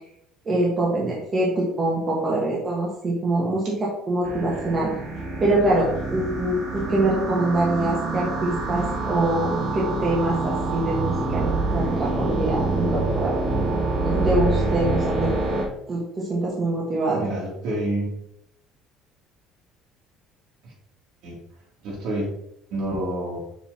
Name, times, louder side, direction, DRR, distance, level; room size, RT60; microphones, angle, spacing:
voice 1, 0.4-4.9 5.4-13.4 14.0-15.5 15.9-17.3, right 2 dB, 20° right, -5 dB, 1.5 m, -24 dB
sound 1, 4.2-15.6, right 3 dB, 40° right, 2.6 m, -26 dB
voice 2, 17.1-18.1 20.6-20.7 21.2-21.4 21.8-22.3 22.7-23.4, right 1 dB, 55° right, -2 dB, 2.8 m, -28 dB
7.4 x 6.7 x 2.9 m, 0.74 s
cardioid pair, 175°, 0 cm